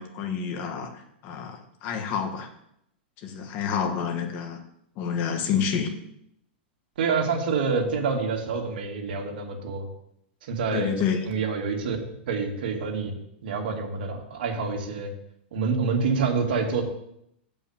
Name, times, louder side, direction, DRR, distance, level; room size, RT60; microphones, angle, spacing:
voice 1, 0.0-2.5 3.2-4.6 5.0-5.9 10.7-11.3, left 7 dB, 35° left, 4 dB, 1.5 m, -29 dB
voice 2, 7.0-9.9 10.4-10.9 11.3-12.0 12.3-13.1 13.4-15.1 15.5-16.8, right 5 dB, 65° right, 0 dB, 2.4 m, -27 dB
8.2 x 5.5 x 7.3 m, 0.74 s
supercardioid pair, 160°, 6 cm